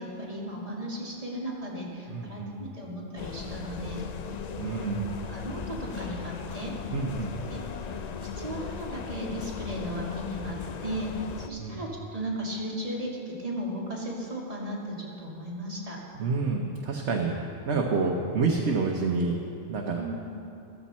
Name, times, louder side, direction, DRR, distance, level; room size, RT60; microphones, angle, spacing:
voice 1, 0.0-4.0 4.7-5.0 5.3-6.8 7.5-7.6 8.4-16.0 19.9-20.2, equal, 30° right, -4 dB, 2.3 m, -36 dB
voice 2, 2.1-2.7 4.6-5.1 6.9-7.3 11.6-11.8 16.1-17.3 17.7-19.4 19.7-20.0, right 4 dB, 65° right, 0 dB, 1.2 m, -28 dB
sound 1, 3.2-11.5, left 6 dB, 60° left, 0.4 m, -37 dB
14.5 x 13.0 x 4.3 m, 2.6 s
omnidirectional pair, 1.3 m